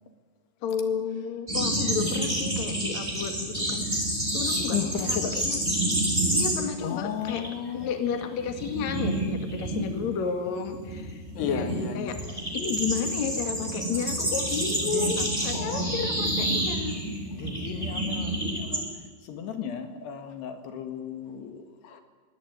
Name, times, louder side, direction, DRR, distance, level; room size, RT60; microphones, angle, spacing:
voice 1, 0.6-3.8 4.3-5.6 6.3-7.5 7.7-11.7 12.0-12.2 12.5-17.1, left 6 dB, 50° left, 7 dB, 2.8 m, -32 dB
sound 1, 1.5-6.9 7.1-7.5 7.8-18.8, right 1 dB, 5° right, 4.7 m, -29 dB
voice 2, 1.9-2.4 3.6-3.9 4.7-5.4 6.8-8.0 11.4-12.2 14.8-15.1 15.5-16.0 17.3-18.8 19.2-22.0, left 7 dB, 80° left, 7 dB, 4.0 m, -34 dB
22.5 x 17.5 x 9.5 m, 1.4 s
omnidirectional pair, 4.7 m